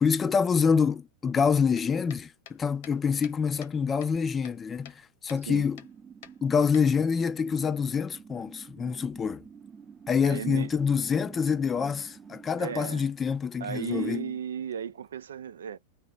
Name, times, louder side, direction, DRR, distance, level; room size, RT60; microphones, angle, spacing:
voice 1, 0.0-5.8 6.4-9.4 10.1-14.3, left 6 dB, 20° left, 0.5 m, -26 dB
sound 1, 1.7-3.8 4.0-5.0 5.3-5.4 5.8-5.9 6.2-7.3, left 10 dB, 60° left, 0.8 m, -49 dB
sound 2, 5.7-13.0, right 6 dB, 20° right, 0.6 m, -49 dB
voice 2, 10.2-10.7 12.6-13.1 13.6-15.8, right 8 dB, 75° right, 0.4 m, -35 dB
2.8 x 2.4 x 4.2 m
hypercardioid pair, 100°, 0 cm